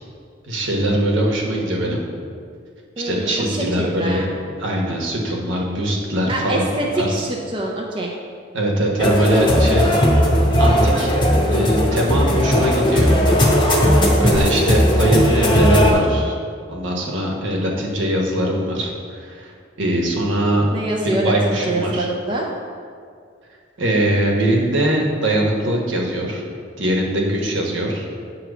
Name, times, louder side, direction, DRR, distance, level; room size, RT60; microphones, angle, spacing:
voice 1, 0.4-2.0 3.0-4.3 4.6-7.3 8.5-9.9 10.6-13.2 14.2-16.3 16.7-20.7 21.0-22.1 23.8-26.4 26.8-28.1, right 1 dB, 70° right, -1 dB, 1.1 m, -21 dB
voice 2, 3.0-4.3 6.3-8.1 13.9-14.5 20.7-22.5, right 1 dB, 25° right, -2 dB, 0.5 m, -25 dB
sound 1, 9.0-15.9, equal, 25° left, 0.8 m, -16 dB
8.0 x 3.0 x 6.0 m, 2.2 s
head